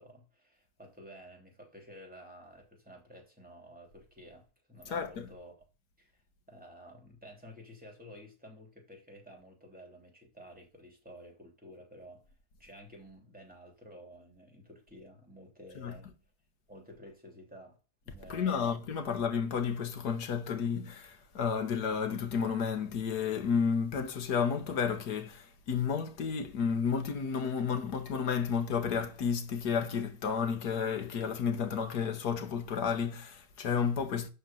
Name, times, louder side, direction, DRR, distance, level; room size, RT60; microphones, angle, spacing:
voice 1, 0.0-5.5 6.0-12.2 12.6-16.1 16.7-17.8 18.0-19.3, equal, 5° right, 3.3 m, -52 dB
voice 2, 4.9-5.3 15.7-16.0 18.3-34.3, left 6 dB, 70° left, 1.8 m, -32 dB
11.5 x 4.2 x 7.6 m
omnidirectional pair, 1.8 m